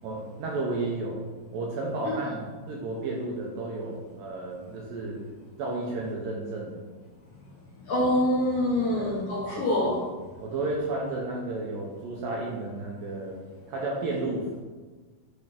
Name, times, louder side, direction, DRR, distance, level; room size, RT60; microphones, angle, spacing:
voice 1, 0.0-1.2 1.5-5.2 5.6-6.8 8.9-9.2 9.5-9.7 10.4-13.4 13.7-14.6, right 2 dB, 80° right, -2 dB, 2.2 m, -32 dB
voice 2, 7.9-10.0, left 1 dB, 70° left, -6 dB, 1.9 m, -25 dB
8.5 x 3.5 x 4.3 m, 1.3 s
omnidirectional pair, 4.8 m